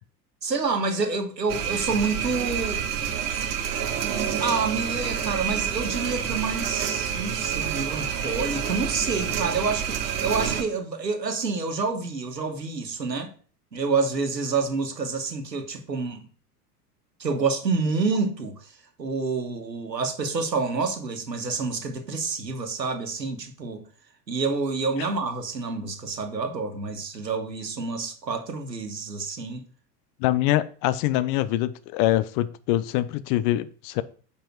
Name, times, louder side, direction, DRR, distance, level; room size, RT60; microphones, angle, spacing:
voice 1, 0.4-2.8 3.3-3.4 4.4-13.3 13.7-16.2 17.2-18.7 19.0-23.8 24.3-29.6, right 4 dB, 90° right, 1.6 m, -28 dB
sound 1, 1.5-10.6, right 8 dB, 70° right, 1.5 m, -28 dB
voice 2, 30.2-34.0, left 14 dB, 40° left, 0.7 m, -24 dB
7.4 x 5.5 x 4.6 m
hypercardioid pair, 85°, 48 cm